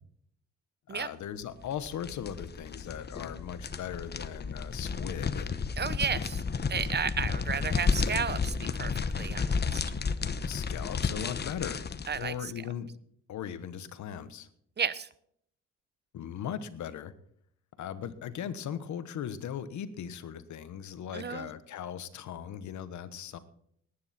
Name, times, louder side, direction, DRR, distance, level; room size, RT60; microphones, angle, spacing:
voice 1, 0.9-5.6 10.5-11.8 12.1-12.9 13.3-14.5 16.1-17.1 17.8-23.4, left 9 dB, 70° left, 13 dB, 1.3 m, -38 dB
sound 1, 1.6-12.3, left 5 dB, 35° left, 1.0 m, -32 dB
voice 2, 5.8-6.4 6.7-9.4 9.7-9.8 12.1-12.3 14.8-15.1 21.1-21.5, right 6 dB, 35° right, 16 dB, 0.9 m, -32 dB
19.0 x 9.9 x 4.3 m, 0.68 s
cardioid pair, 90°, 30 cm